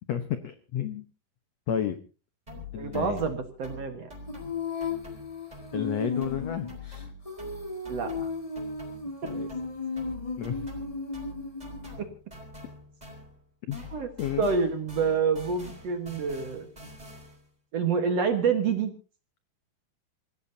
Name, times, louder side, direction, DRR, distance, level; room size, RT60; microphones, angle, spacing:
voice 1, 0.1-1.1 1.7-2.0 2.7-3.2 5.7-6.7 9.2-9.5 10.4-10.7 13.7-13.9 14.2-14.5, left 9 dB, 75° left, 9 dB, 1.5 m, -31 dB
sound 1, 2.5-5.9 6.2-13.5 13.7-17.5, left 2 dB, 10° right, 4.2 m, -45 dB
voice 2, 2.7-4.1 7.9-8.3 12.0-12.1 13.9-14.1 14.4-16.7 17.7-18.9, right 5 dB, 55° right, 6 dB, 2.0 m, -27 dB
Female singing, 4.3-11.9, left 4 dB, 20° left, 0.9 m, -35 dB
27.5 x 16.0 x 2.8 m, 0.34 s
omnidirectional pair, 4.4 m